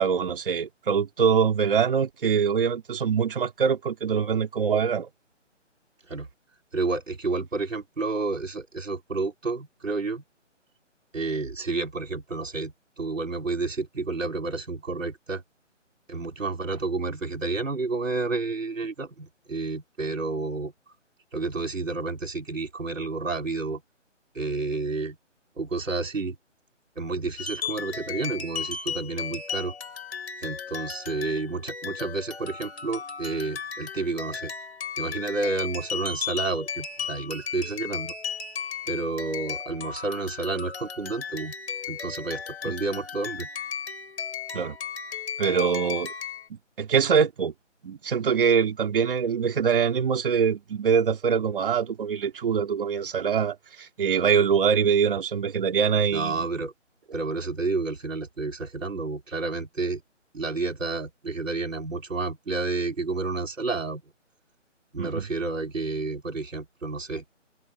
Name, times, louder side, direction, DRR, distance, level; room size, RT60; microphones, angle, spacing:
voice 1, 0.0-5.1 44.5-44.7 45.4-46.1 46.8-47.5 47.8-56.5 65.0-65.2, right 6 dB, 45° right, 2.9 m, -24 dB
voice 2, 6.7-10.2 11.1-15.4 16.1-20.7 21.3-23.8 24.3-25.2 25.6-26.4 27.0-29.7 30.4-34.5 35.0-38.1 38.9-41.5 41.9-43.5 56.1-56.7 57.1-60.0 60.3-64.0 64.9-67.2, right 3 dB, 90° right, 4.1 m, -30 dB
sound 1, 27.4-46.5, left 6 dB, 60° left, 4.7 m, -35 dB
figure-of-eight pair, 160°, 37 cm